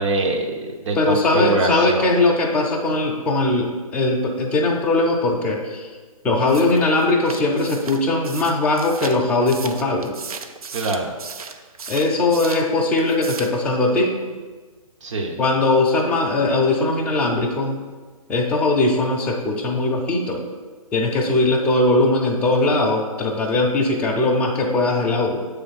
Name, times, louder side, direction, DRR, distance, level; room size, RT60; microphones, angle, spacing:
voice 1, 0.0-2.1 10.7-11.1 15.0-15.3, right 2 dB, 50° right, 2 dB, 1.1 m, -24 dB
voice 2, 0.9-5.9 6.2-10.1 11.9-14.1 15.4-17.8 18.3-20.4 20.9-25.4, left 2 dB, 10° left, -2 dB, 0.5 m, -20 dB
sound 1, 6.5-12.7 13.0-13.6, right 5 dB, 70° right, 0.6 m, -36 dB
7.0 x 3.4 x 5.7 m, 1.4 s
hypercardioid pair, 150°, 19 cm